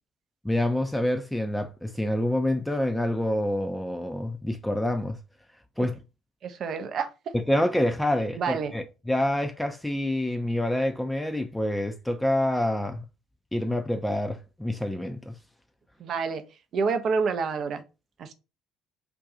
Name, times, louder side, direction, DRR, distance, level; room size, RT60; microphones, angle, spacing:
voice 1, 0.4-5.2 5.8-6.0 7.3-13.0 13.5-15.4, left 1 dB, 5° left, 0.4 m, -27 dB
voice 2, 6.4-7.1 8.4-8.7 16.0-16.4 16.7-17.8 18.2-18.3, right 5 dB, 50° right, 0.5 m, -28 dB
2.6 x 2.3 x 3.7 m
figure-of-eight pair, 55°, 0 cm